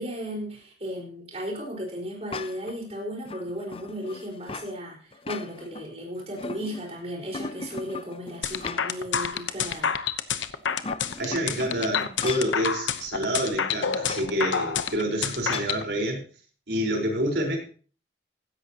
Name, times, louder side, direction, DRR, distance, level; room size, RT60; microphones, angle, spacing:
voice 1, 0.0-9.9, equal, 35° right, -1 dB, 4.7 m, -35 dB
sound 1, 2.3-2.8 3.3-4.7 5.1-5.9 6.2-7.0 7.3-9.1 9.5-9.6 10.6-12.6 14.0-14.3 15.5-15.8, left 4 dB, 30° left, 0.6 m, -38 dB
sound 2, 8.4-15.8, left 7 dB, 85° left, 0.9 m, -28 dB
voice 2, 11.2-16.2 16.7-17.6, equal, 65° right, 0 dB, 4.5 m, -27 dB
16.0 x 13.0 x 2.9 m, 0.40 s
head